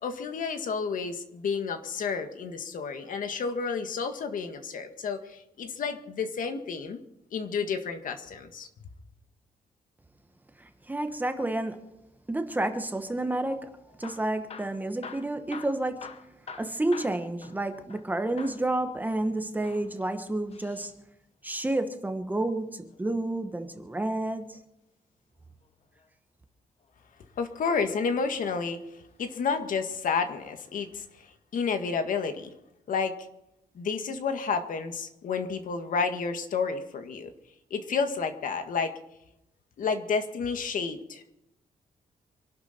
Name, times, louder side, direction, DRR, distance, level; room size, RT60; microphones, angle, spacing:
voice 1, 0.0-7.0 7.3-8.7 27.4-32.5 32.9-33.1 33.8-37.3 37.7-38.9 39.8-41.3, left 5 dB, 65° left, 1.8 m, -31 dB
voice 2, 10.6-11.9 12.3-16.3 16.6-20.9 21.4-24.6, right 2 dB, 10° right, 1.1 m, -30 dB
Hammer / Drill, 13.9-18.1 18.4-18.7 19.5-20.9 22.7-23.9 25.6-26.1 26.8-27.6 28.3-28.6 28.9-29.0 29.6-29.7, left 5 dB, 45° left, 1.0 m, -47 dB
26.0 x 12.0 x 4.4 m
wide cardioid pair, 165°, 15 cm